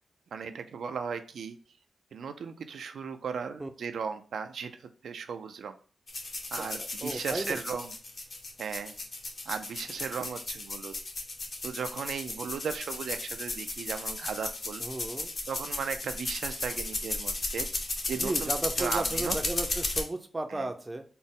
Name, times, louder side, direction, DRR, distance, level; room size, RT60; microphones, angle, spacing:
voice 1, 0.3-1.6 2.1-5.8 6.5-7.9 8.6-9.0 9.5-10.9 11.6-14.8 15.5-17.7 18.1-19.4 20.5-20.7, right 6 dB, 90° right, 8 dB, 0.4 m, -36 dB
sound 1, 6.1-20.0, left 2 dB, 40° left, 0.8 m, -35 dB
voice 2, 6.6-7.6 14.8-15.3 18.1-21.0, right 2 dB, 20° right, 6 dB, 0.4 m, -35 dB
4.1 x 2.0 x 3.6 m, 0.39 s
wide cardioid pair, 125°, 0 cm